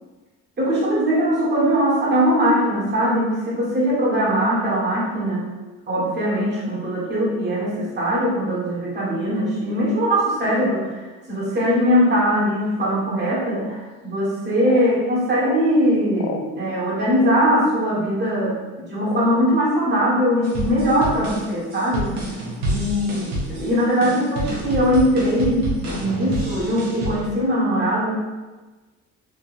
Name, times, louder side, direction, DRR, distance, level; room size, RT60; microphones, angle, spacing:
voice 1, 0.6-5.5 5.9-18.6 18.9-22.1 22.7-28.1, equal, 35° right, -6 dB, 1.5 m, -21 dB
sound 1, 13.9-14.0 14.6-14.9 15.4-15.7 16.2-16.4 17.2-17.4 18.3-18.4 19.0-19.5 20.1-20.3, left 6 dB, 60° left, 0.5 m, -31 dB
sound 2, 20.4-27.2, right 1 dB, 75° right, 1.2 m, -28 dB
3.5 x 2.9 x 2.6 m, 1.2 s
supercardioid pair, 85°, 29 cm